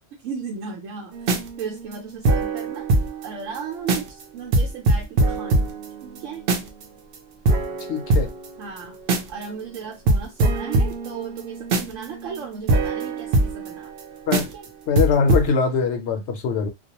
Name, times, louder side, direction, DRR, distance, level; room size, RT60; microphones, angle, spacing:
voice 1, 0.2-2.9 3.2-5.8 6.0-6.5 8.6-9.0 9.3-13.9 14.4-14.7, right 6 dB, 85° right, 1.0 m, -36 dB
sound 1, 1.1-3.3 3.5-3.6 3.9-4.2 4.5-6.8 7.1-7.2 7.5-9.4 9.7-9.8 10.1-14.0 14.3-14.7 15.0-15.5, right 2 dB, 60° right, 0.7 m, -22 dB
voice 2, 7.9-8.3 14.3-14.5 14.9-16.7, left 5 dB, 70° left, 0.8 m, -22 dB
2.2 x 2.1 x 2.8 m
omnidirectional pair, 1.3 m